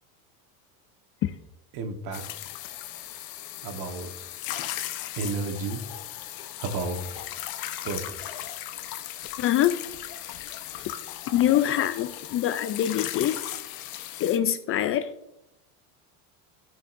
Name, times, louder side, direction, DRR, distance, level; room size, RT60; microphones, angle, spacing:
voice 1, 1.7-2.2 3.6-4.1 5.2-5.8 6.6-7.0 7.8-8.4, right 4 dB, 60° right, 1.4 m, -32 dB
sound 1, 2.1-14.4, left 13 dB, 55° left, 0.9 m, -37 dB
voice 2, 9.4-9.9 11.3-13.4 14.2-15.1, left 11 dB, 35° left, 0.4 m, -24 dB
12.5 x 5.8 x 2.6 m
supercardioid pair, 120°, 42 cm